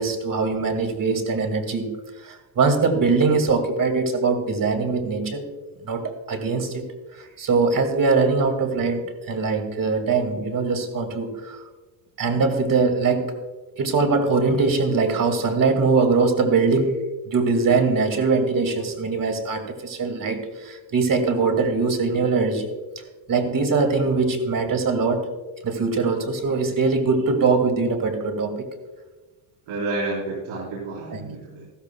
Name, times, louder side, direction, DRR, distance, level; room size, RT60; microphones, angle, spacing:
voice 1, 0.0-1.9 2.2-5.4 5.8-11.6 12.2-13.3 13.8-17.0 17.3-22.7 23.3-25.3 25.6-28.7, right 4 dB, 40° right, 6 dB, 2.3 m, -22 dB
voice 2, 29.7-31.7, right 2 dB, 75° right, -6 dB, 4.4 m, -30 dB
15.0 x 13.5 x 2.3 m, 1.2 s
cardioid pair, 100°, 49 cm